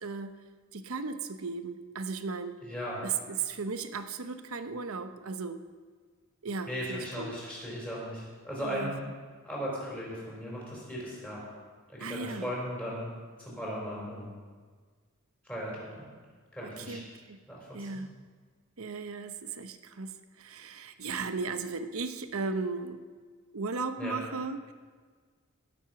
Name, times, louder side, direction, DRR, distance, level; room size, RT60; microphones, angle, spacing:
voice 1, 0.0-0.4 0.7-2.6 3.0-5.6 6.4-7.4 8.6-8.9 12.0-12.5 16.6-17.4 17.7-18.1 18.8-23.0 23.5-24.7, right 4 dB, 75° right, 9 dB, 0.8 m, -36 dB
voice 2, 2.6-3.0 6.7-9.0 9.4-11.4 11.9-13.1 13.4-14.3 15.4-16.0 16.5-17.0 17.5-18.0 24.0-24.2, equal, 5° left, -5 dB, 4.6 m, -37 dB
18.0 x 8.0 x 5.9 m, 1.5 s
head